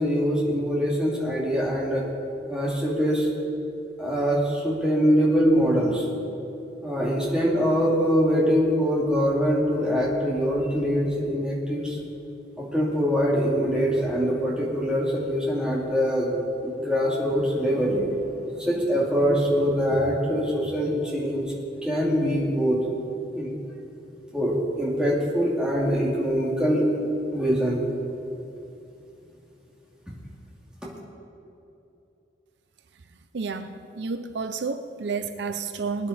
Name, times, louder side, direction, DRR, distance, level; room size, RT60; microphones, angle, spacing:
voice 1, 0.0-2.1 2.5-3.3 4.0-6.0 6.8-12.0 12.6-16.3 16.6-18.0 18.5-21.5 21.8-22.8 23.4-23.5 24.3-27.8, equal, 5° right, -5 dB, 2.5 m, -23 dB
voice 2, 33.3-36.1, right 4 dB, 70° right, 9 dB, 0.6 m, -30 dB
21.5 x 9.6 x 4.2 m, 2.9 s
head